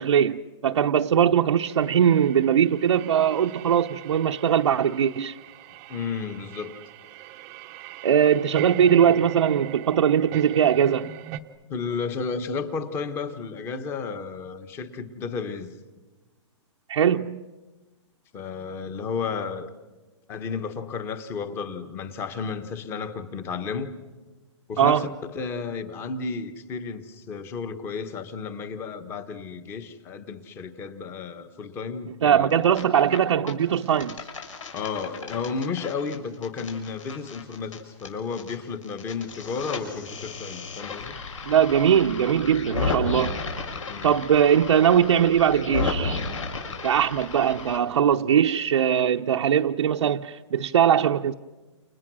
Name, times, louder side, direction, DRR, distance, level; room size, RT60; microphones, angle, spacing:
voice 1, 0.0-5.3 8.0-11.1 16.9-17.5 24.8-25.1 32.2-34.2 41.5-43.4 44.0-46.2 46.8-51.3, right 9 dB, 75° right, 0.8 m, -21 dB
sound 1, 1.7-11.4, right 11 dB, 20° right, 0.8 m, -40 dB
voice 2, 5.9-6.8 11.7-15.7 18.3-19.7 20.3-23.9 24.7-32.6 34.7-41.2 43.9-44.2, left 5 dB, 15° left, 1.2 m, -32 dB
sound 2, 32.5-33.2 33.5-38.6 38.8-47.8, left 4 dB, 85° left, 6.6 m, -33 dB
29.5 x 29.0 x 6.3 m
hypercardioid pair, 170°, 16 cm